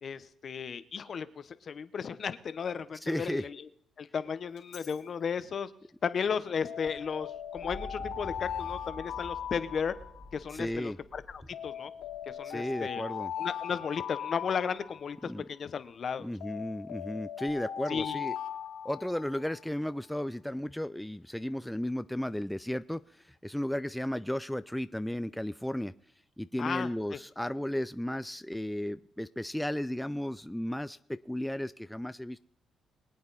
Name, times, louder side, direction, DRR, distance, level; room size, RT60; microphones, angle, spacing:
voice 1, 0.0-3.5 4.0-5.7 6.0-9.9 10.3-11.9 12.3-13.0 13.4-16.3 17.9-18.2 26.6-27.2, left 6 dB, 50° left, 13 dB, 1.0 m, -34 dB
voice 2, 3.0-3.4 10.5-11.0 12.4-13.3 15.3-15.5 16.2-18.4 18.8-25.9 26.4-31.0 31.3-32.4, left 1 dB, 5° left, 12 dB, 0.4 m, -34 dB
Alarm, 4.6-4.9 6.6-10.4 11.5-15.3 16.4-19.6, left 9 dB, 85° left, 3.3 m, -39 dB
sound 1, 6.9-12.8 14.4-14.9 17.5-17.6, equal, 20° right, 2.6 m, -48 dB
23.5 x 8.6 x 4.2 m, 0.72 s
cardioid pair, 90°, 0 cm